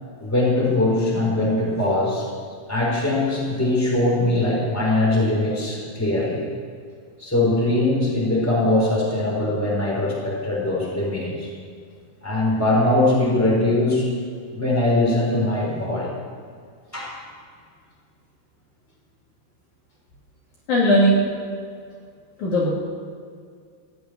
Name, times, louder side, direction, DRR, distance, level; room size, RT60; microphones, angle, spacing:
voice 1, 0.2-2.3 2.7-6.5 7.2-11.5 12.2-14.0 14.5-16.1 16.9-17.1, left 2 dB, 5° left, -3 dB, 3.8 m, -21 dB
voice 2, 20.7-21.2 22.4-22.7, equal, 55° left, -5 dB, 3.3 m, -17 dB
15.0 x 8.7 x 9.8 m, 2.1 s
omnidirectional pair, 4.6 m